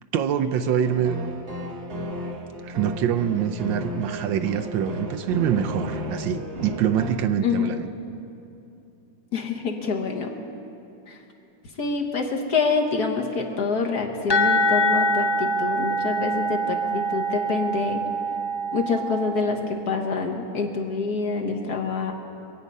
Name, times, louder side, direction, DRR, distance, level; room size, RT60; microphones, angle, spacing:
voice 1, 0.1-1.3 2.6-7.9, right 9 dB, 75° right, 8 dB, 1.3 m, -25 dB
sound 1, 0.8-7.1, equal, 40° right, 1.1 m, -34 dB
voice 2, 9.3-10.3 11.1-11.2 11.8-18.0 18.7-22.1, left 4 dB, 55° left, 1 dB, 1.6 m, -26 dB
sound 2, 14.3-19.9, right 1 dB, 20° left, 0.6 m, -25 dB
24.5 x 8.9 x 5.4 m, 2.8 s
omnidirectional pair, 2.2 m